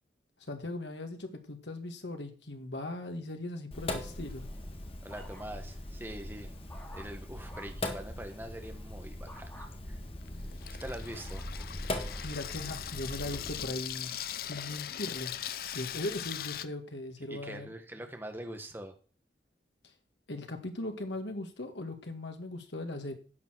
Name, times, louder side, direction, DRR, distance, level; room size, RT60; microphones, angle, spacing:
voice 1, 0.4-4.4 12.2-14.1 14.5-15.3 15.6-17.7 20.3-23.1, left 2 dB, 85° left, 6 dB, 1.9 m, -39 dB
Sink (filling or washing), 3.7-13.6, left 1 dB, 30° left, 1.5 m, -40 dB
sound 1, 4.4-5.8 6.2-7.9 9.3-9.7 10.3-12.3 12.9-13.3, equal, 15° left, 2.6 m, -53 dB
voice 2, 5.0-6.5 6.9-10.0 10.8-11.4 17.3-19.0, right 1 dB, 10° right, 5 dB, 1.3 m, -43 dB
Water tap faucet / Sink (filling or washing), 9.5-16.7, left 10 dB, 55° left, 0.5 m, -40 dB
11.0 x 6.8 x 6.2 m, 0.40 s
head